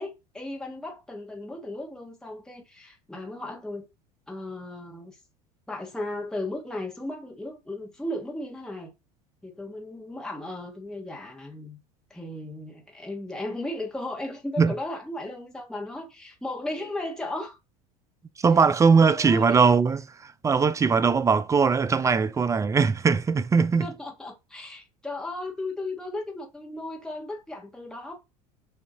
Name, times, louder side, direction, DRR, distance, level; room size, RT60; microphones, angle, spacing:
voice 1, 0.0-3.9 4.3-5.2 5.7-8.9 9.4-11.8 12.1-17.6 19.0-19.7 23.8-28.1, left 1 dB, 5° left, 1.2 m, -36 dB
voice 2, 18.4-23.9, right 5 dB, 15° right, 0.3 m, -20 dB
6.5 x 2.7 x 2.7 m
hypercardioid pair, 80°, 20 cm